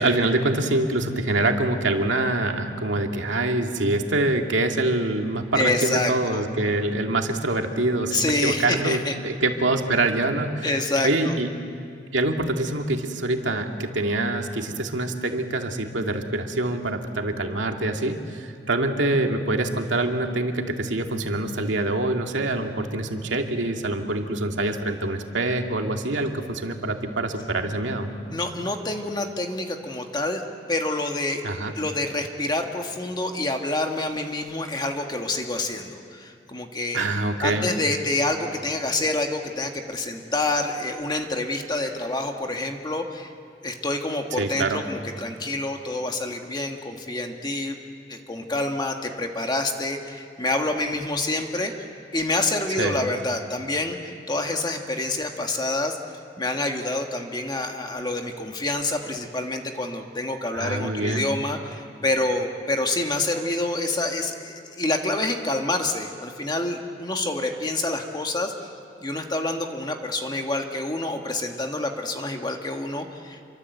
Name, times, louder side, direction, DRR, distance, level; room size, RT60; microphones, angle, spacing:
voice 1, 0.0-10.7 11.0-11.5 12.1-28.1 31.4-31.7 36.9-37.7 44.4-44.8 52.8-53.0 60.5-61.3, right 2 dB, 90° right, 3 dB, 2.3 m, -25 dB
voice 2, 5.6-6.4 8.1-9.2 10.6-11.4 28.3-30.4 30.7-31.4 31.7-37.1 37.4-43.3 43.6-47.8 48.1-51.7 52.1-56.0 56.4-68.5 69.0-73.4, left 2 dB, 25° left, 3 dB, 1.7 m, -27 dB
28.0 x 24.0 x 8.1 m, 2.4 s
head